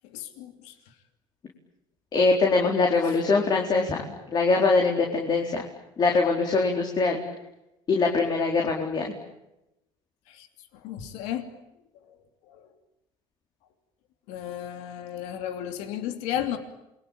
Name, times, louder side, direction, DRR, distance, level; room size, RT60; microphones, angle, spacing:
voice 1, 0.1-0.7 10.3-10.5 10.8-11.5 12.5-12.6 14.3-16.6, left 10 dB, 85° left, 7 dB, 2.8 m, -33 dB
voice 2, 2.1-5.6 6.0-7.2 7.9-9.1, left 3 dB, 40° left, 1 dB, 4.4 m, -23 dB
28.5 x 22.5 x 8.9 m, 0.91 s
cardioid pair, 105°, 11 cm